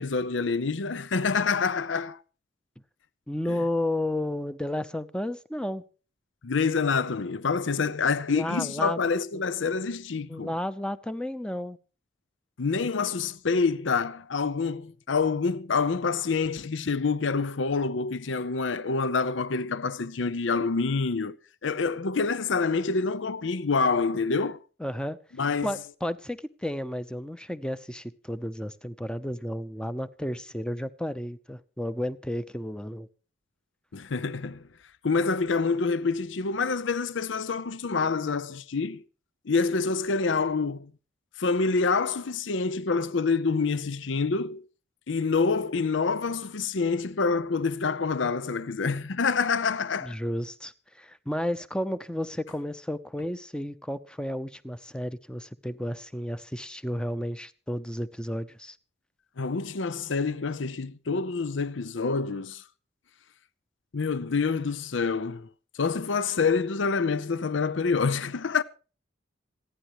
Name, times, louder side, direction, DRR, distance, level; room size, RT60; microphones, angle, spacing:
voice 1, 0.0-2.2 3.5-3.6 6.4-10.5 12.6-21.4 21.6-24.6 25.4-25.7 33.9-34.6 35.0-39.0 39.5-40.9 41.4-44.7 45.1-50.2 59.4-62.6 63.9-65.5 65.7-68.6, left 4 dB, 70° left, 0.7 m, -27 dB
voice 2, 3.3-5.8 8.3-9.0 9.3-9.4 10.3-11.8 24.8-25.2 25.6-33.1 50.0-58.8, left 1 dB, 5° left, 0.7 m, -32 dB
26.5 x 10.0 x 3.1 m
head